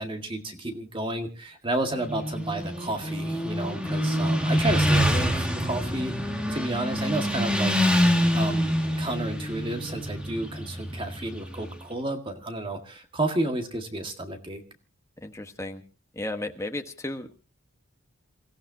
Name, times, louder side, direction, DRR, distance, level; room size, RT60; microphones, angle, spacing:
voice 1, 0.0-6.1 6.5-7.7 8.3-14.6, right 2 dB, 25° right, 5 dB, 1.9 m, -31 dB
Motorcycle, 2.0-11.7, equal, 5° right, 2.0 m, -26 dB
voice 2, 15.2-15.8 16.1-17.3, left 1 dB, 15° left, 5 dB, 1.3 m, -34 dB
28.0 x 15.5 x 2.8 m, 0.33 s
head